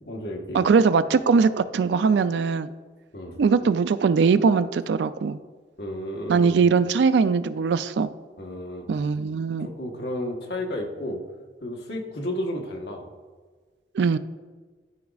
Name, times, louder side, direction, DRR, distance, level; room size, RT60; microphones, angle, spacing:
voice 1, 0.0-0.6 3.1-3.4 5.8-6.6 8.4-8.9 9.6-11.2 11.6-13.1, left 1 dB, 65° left, 1 dB, 1.2 m, -32 dB
voice 2, 0.5-2.7 3.4-5.4 6.3-8.1 8.9-9.7 13.9-14.2, right 5 dB, 75° right, 13 dB, 0.3 m, -21 dB
12.5 x 5.0 x 2.4 m, 1.4 s
head